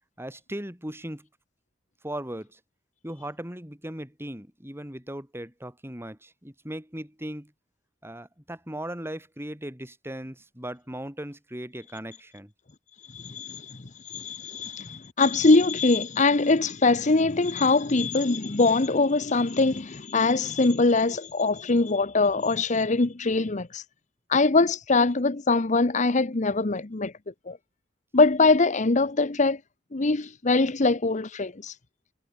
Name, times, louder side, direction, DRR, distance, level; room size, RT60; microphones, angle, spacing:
voice 1, 0.2-1.3 2.0-2.6 3.0-7.5 8.0-12.5, right 1 dB, 15° right, 5.7 m, -38 dB
voice 2, 13.1-23.8 24.3-27.1 27.5-27.6 28.1-29.6 29.9-31.7, left 3 dB, 40° left, 0.9 m, -23 dB
head